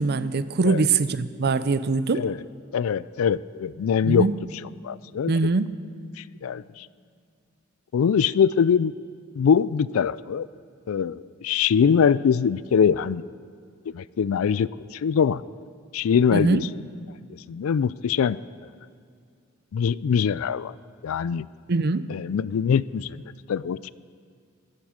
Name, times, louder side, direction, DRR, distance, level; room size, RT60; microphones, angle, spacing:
voice 1, 0.0-2.3 4.0-4.3 5.3-5.7 16.3-16.6 21.7-22.1, right 4 dB, 50° right, 14 dB, 0.6 m, -23 dB
voice 2, 2.7-4.3 4.8-5.3 6.2-6.9 7.9-8.9 9.4-10.5 10.9-13.2 13.9-15.4 15.9-16.7 17.5-18.4 19.7-20.7 21.0-21.5 22.1-23.2 23.5-23.9, left 7 dB, 80° left, 19 dB, 0.4 m, -23 dB
18.0 x 10.5 x 6.4 m, 2.3 s
head